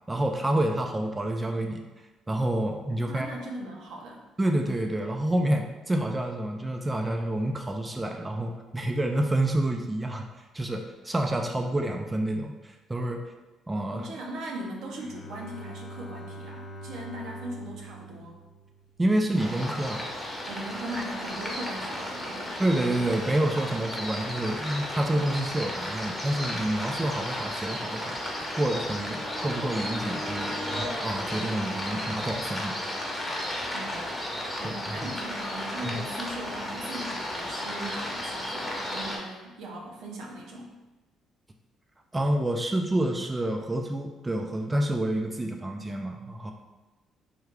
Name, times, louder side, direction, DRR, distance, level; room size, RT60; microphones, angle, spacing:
voice 1, 0.1-1.8 2.3-3.3 4.4-13.2 13.7-14.1 19.0-20.1 22.6-30.6 31.0-32.8 34.6-35.1 35.8-36.0 42.1-46.5, right 1 dB, 20° right, 3 dB, 0.3 m, -28 dB
voice 2, 3.0-4.2 13.9-18.4 20.5-22.6 33.7-34.0 34.6-40.8, right 1 dB, 75° right, 0 dB, 0.6 m, -39 dB
Bowed string instrument, 14.9-19.4, right 1 dB, 45° left, 0.6 m, -44 dB
sound 1, 19.3-39.2, left 1 dB, 10° left, 0.8 m, -34 dB
sound 2, 28.0-31.0, equal, 40° right, 0.8 m, -40 dB
3.3 x 2.3 x 3.4 m, 1.1 s
supercardioid pair, 80°, 0 cm